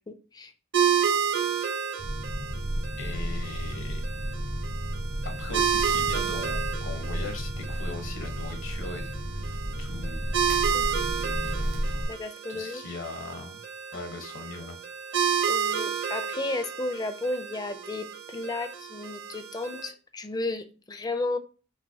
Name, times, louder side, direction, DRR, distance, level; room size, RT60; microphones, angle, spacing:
voice 1, 0.1-0.5 10.7-11.1 12.1-12.8 15.5-21.4, left 2 dB, 20° left, 10 dB, 0.4 m, -33 dB
sound 1, 0.7-19.9, right 7 dB, 60° right, 0.8 m, -31 dB
sound 2, 2.0-12.1, equal, 80° right, 1.2 m, -32 dB
voice 2, 3.0-4.0 5.2-10.2 11.0-11.5 12.5-13.6 13.9-14.8, left 3 dB, 75° left, 5 dB, 1.1 m, -40 dB
6.1 x 2.9 x 2.8 m, 0.36 s
head